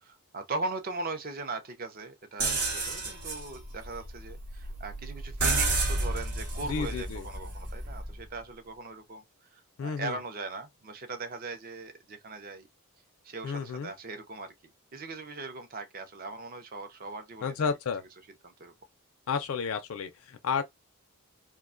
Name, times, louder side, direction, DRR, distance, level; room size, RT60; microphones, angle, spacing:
voice 1, 0.0-9.2 9.5-12.7 13.2-14.5 14.9-17.7 18.4-18.7, right 3 dB, 40° right, 0.5 m, -39 dB
sound 1, 2.4-8.2, right 2 dB, 90° right, 1.0 m, -31 dB
voice 2, 6.7-7.2 9.8-10.2 13.4-13.9 17.4-18.0 19.3-20.6, left 6 dB, 70° left, 0.4 m, -31 dB
2.4 x 2.2 x 2.4 m
head